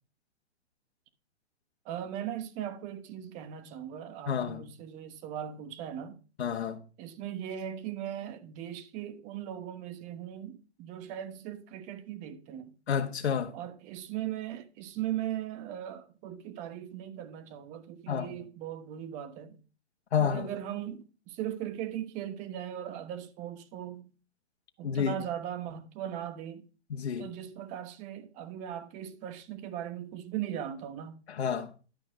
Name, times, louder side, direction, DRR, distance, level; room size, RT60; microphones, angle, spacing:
voice 1, 1.8-6.2 7.0-12.7 13.5-19.6 20.2-24.1 24.8-26.6 27.2-31.2, right 11 dB, 20° right, 1.1 m, -39 dB
voice 2, 4.3-4.7 6.4-6.8 12.9-13.5 18.1-18.4 20.1-20.5 24.8-25.2 26.9-27.3 31.3-31.7, left 7 dB, 70° left, 1.6 m, -30 dB
11.5 x 6.0 x 5.0 m
hypercardioid pair, 145°, 34 cm